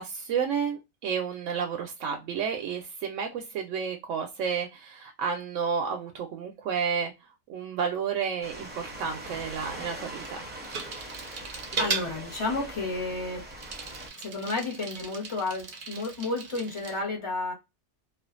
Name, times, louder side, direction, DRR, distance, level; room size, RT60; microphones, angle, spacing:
voice 1, 0.0-7.1 7.5-10.4, right 6 dB, 85° right, 0.9 m, -31 dB
sound 1, 8.4-14.1, right 1 dB, 10° right, 0.6 m, -42 dB
Bicycle, 8.6-17.0, right 5 dB, 55° right, 0.7 m, -38 dB
voice 2, 11.8-13.4 14.2-17.5, left 3 dB, 30° left, 0.9 m, -31 dB
2.5 x 2.3 x 2.3 m
omnidirectional pair, 1.2 m